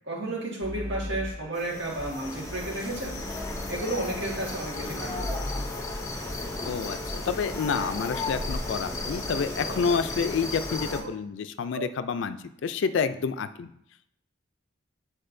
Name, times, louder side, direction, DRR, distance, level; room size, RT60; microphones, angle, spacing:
voice 1, 0.1-3.2 3.7-5.4, right 2 dB, 60° right, -3 dB, 1.7 m, -32 dB
sound 1, 0.6-1.3 2.0-4.2 4.8-5.6, left 1 dB, 30° right, 1.1 m, -38 dB
sound 2, 1.5-11.0, left 2 dB, 15° left, 0.6 m, -34 dB
voice 2, 6.7-13.7, left 5 dB, 65° left, 11 dB, 0.3 m, -29 dB
sound 3, 9.7-9.9 10.7-11.2 11.7-11.9 12.8-13.2, right 2 dB, 90° right, 0.5 m, -42 dB
8.6 x 4.3 x 2.6 m, 0.74 s
head